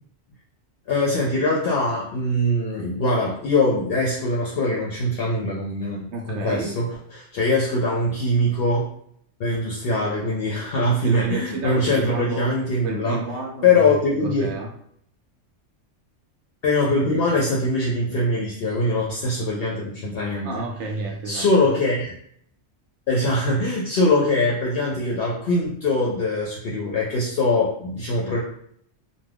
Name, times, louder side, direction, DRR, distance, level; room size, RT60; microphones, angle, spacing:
voice 1, 0.9-6.9 7.1-8.9 9.4-13.2 13.6-14.6 16.6-20.6 21.2-22.2 23.1-28.4, left 2 dB, 65° left, -4 dB, 0.7 m, -22 dB
voice 2, 6.1-6.8 11.0-12.5 12.8-14.7 20.4-21.5, right 3 dB, 70° right, 1 dB, 0.8 m, -30 dB
2.3 x 2.2 x 3.3 m, 0.66 s
omnidirectional pair, 1.3 m